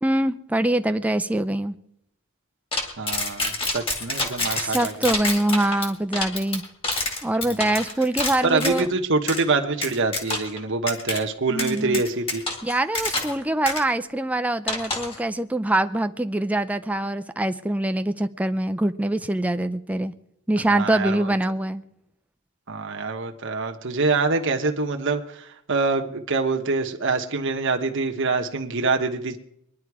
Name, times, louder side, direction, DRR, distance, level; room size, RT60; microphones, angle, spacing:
voice 1, 0.0-1.8 4.5-6.6 7.2-8.9 11.5-12.0 12.6-20.1 20.5-21.8, right 1 dB, 5° right, 9 dB, 0.4 m, -24 dB
sound 1, 2.7-8.9 9.3-9.4 9.8-10.6 10.9-11.2 11.6-13.4 13.7-13.8 14.7-15.2, left 2 dB, 25° left, 2.0 m, -27 dB
voice 2, 3.0-5.1 7.4-7.8 8.4-12.4 20.7-21.3 22.7-29.4, right 3 dB, 60° right, 4 dB, 1.1 m, -25 dB
22.5 x 10.5 x 4.8 m, 0.77 s
head